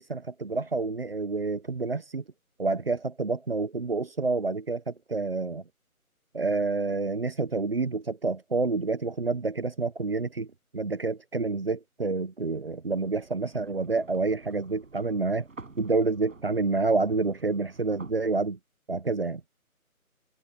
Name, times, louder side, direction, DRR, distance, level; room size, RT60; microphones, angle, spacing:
voice 1, 0.0-2.2 2.6-5.6 6.3-10.5 10.7-15.5 15.8-18.6 18.9-19.4, right 3 dB, 40° right, 1.3 m, -28 dB
sound 1, 12.9-18.1, right 3 dB, 60° right, 7.5 m, -50 dB
figure-of-eight pair, 175°, 44 cm